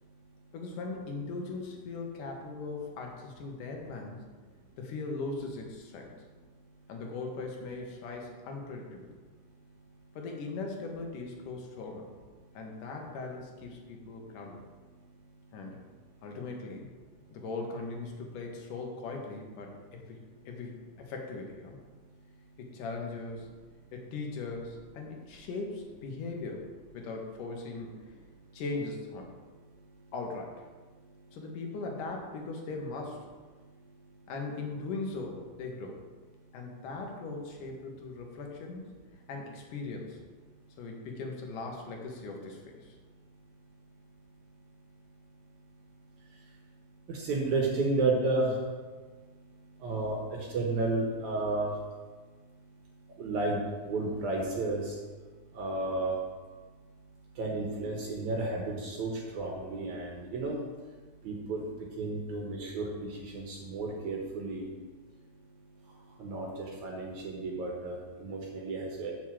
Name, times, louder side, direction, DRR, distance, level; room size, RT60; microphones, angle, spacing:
voice 1, 0.5-4.2 4.8-6.2 6.9-9.1 10.2-12.1 12.5-14.6 15.5-15.8 16.2-16.9 17.3-20.2 20.5-21.8 22.6-23.5 23.9-26.7 26.9-27.9 28.5-29.3 30.1-30.6 31.3-33.3 34.3-36.0 36.5-38.9 39.3-40.2 40.8-43.0, left 3 dB, 85° left, 1 dB, 2.9 m, -39 dB
voice 2, 47.1-48.5 49.8-51.7 53.2-54.9 55.6-56.1 57.4-60.6 61.2-61.6 62.0-62.9 63.3-64.7 66.2-69.1, right 3 dB, 70° right, -1 dB, 2.5 m, -32 dB
6.7 x 6.2 x 7.5 m, 1.4 s
omnidirectional pair, 3.6 m